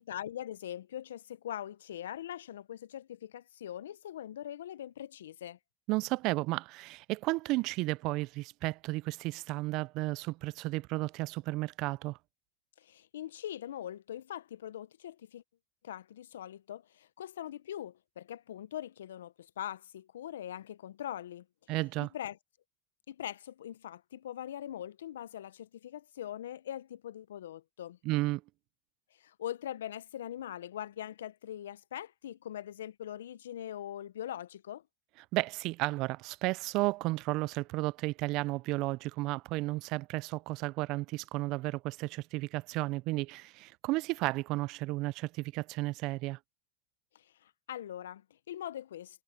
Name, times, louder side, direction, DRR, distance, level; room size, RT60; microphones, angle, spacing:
voice 1, 0.0-5.6 12.8-15.4 15.8-21.4 22.0-22.4 23.1-28.0 29.2-34.8 47.1-49.2, left 11 dB, 80° left, 1.1 m, -42 dB
voice 2, 5.9-12.2 21.7-22.1 28.0-28.4 35.3-46.4, right 21 dB, 55° right, 0.5 m, -33 dB
hypercardioid pair, 90°, 0 cm